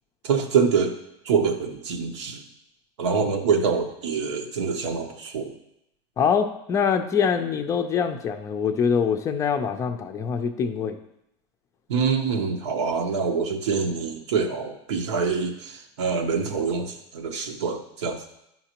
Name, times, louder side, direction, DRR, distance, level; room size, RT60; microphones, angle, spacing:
voice 1, 0.2-0.9 1.2-2.4 3.0-5.5 11.9-18.2, right 5 dB, 90° right, 4 dB, 1.0 m, -25 dB
voice 2, 6.2-11.0, left 6 dB, 20° left, 7 dB, 0.4 m, -24 dB
10.0 x 5.7 x 2.9 m, 0.82 s
supercardioid pair, 155°, 14 cm